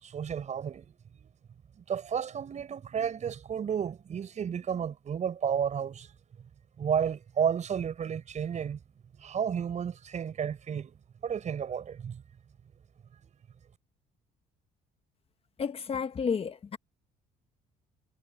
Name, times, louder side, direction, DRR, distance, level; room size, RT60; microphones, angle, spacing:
voice 1, 0.0-0.9 1.2-1.3 1.9-6.1 6.8-8.8 9.2-10.9 11.2-12.2, right 8 dB, 45° right, 5.6 m, -32 dB
voice 2, 15.6-16.8, left 6 dB, 35° left, 1.5 m, -31 dB
cardioid pair, 110°, 17 cm